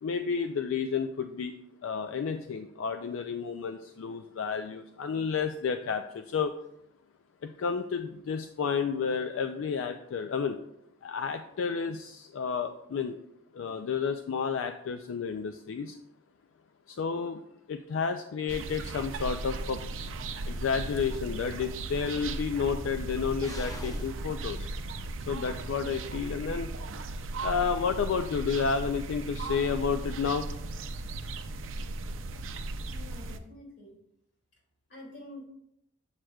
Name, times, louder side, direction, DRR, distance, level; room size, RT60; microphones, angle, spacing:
voice 1, 0.0-1.5 1.8-6.5 7.4-10.6 11.0-13.2 13.6-15.9 17.0-17.4 17.7-19.8 20.5-24.6 25.3-26.7 27.4-30.5, left 6 dB, 90° left, 7 dB, 0.4 m, -31 dB
sound 1, 18.5-33.4, right 2 dB, 85° right, 0.5 m, -37 dB
sound 2, 21.3-25.5, equal, 20° left, 0.9 m, -47 dB
voice 2, 32.9-33.9 34.9-35.5, left 1 dB, 60° left, -2 dB, 2.3 m, -47 dB
7.3 x 6.3 x 2.3 m, 0.77 s
head